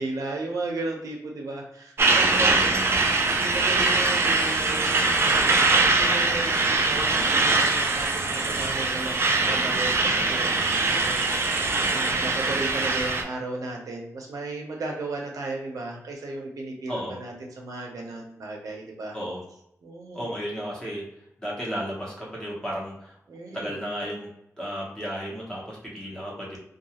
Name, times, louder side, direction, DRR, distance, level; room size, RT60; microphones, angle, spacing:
voice 1, 0.0-2.6 3.4-19.2 19.8-20.3 23.3-23.8, right 2 dB, 80° right, 0 dB, 0.7 m, -35 dB
Truck, 2.0-13.2, right 3 dB, 45° right, 0.3 m, -22 dB
voice 2, 2.4-3.0 16.9-17.2 19.1-19.4 20.1-21.0 21.4-23.2 23.5-24.3 24.6-26.6, equal, 10° left, -5 dB, 0.8 m, -33 dB
2.3 x 2.3 x 2.9 m, 0.77 s
wide cardioid pair, 155°, 6 cm